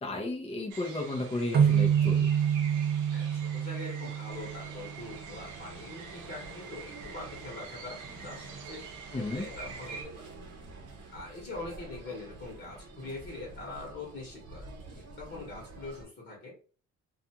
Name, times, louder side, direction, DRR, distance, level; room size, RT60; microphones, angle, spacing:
voice 1, 0.0-2.3 9.1-9.5, left 2 dB, 20° left, 0 dB, 0.6 m, -33 dB
sound 1, 0.7-10.0, right 5 dB, 90° right, 0.7 m, -46 dB
sound 2, 1.5-5.1, right 8 dB, 35° right, 0.4 m, -27 dB
voice 2, 3.1-10.2 11.1-16.5, left 2 dB, 40° left, -3 dB, 1.1 m, -43 dB
sound 3, 4.3-16.1, right 3 dB, 55° right, 0.8 m, -48 dB
2.4 x 2.3 x 2.8 m, 0.39 s
cardioid pair, 90°, 30 cm